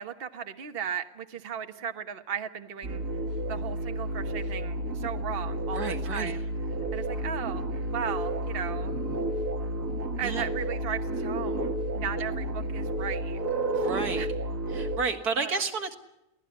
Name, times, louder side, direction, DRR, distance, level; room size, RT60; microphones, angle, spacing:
voice 1, 0.0-3.0 3.5-6.4 6.9-7.6 7.9-9.0 10.2-13.4 14.2-14.3 15.4-15.5, right 8 dB, 40° right, 7 dB, 1.3 m, -36 dB
sound 1, 2.8-15.0, right 1 dB, 60° right, 2.1 m, -31 dB
voice 2, 5.7-6.4 10.2-10.5 13.7-14.3 14.7-15.9, right 4 dB, 90° right, 5 dB, 2.4 m, -31 dB
23.5 x 17.0 x 9.6 m, 0.89 s
omnidirectional pair, 1.6 m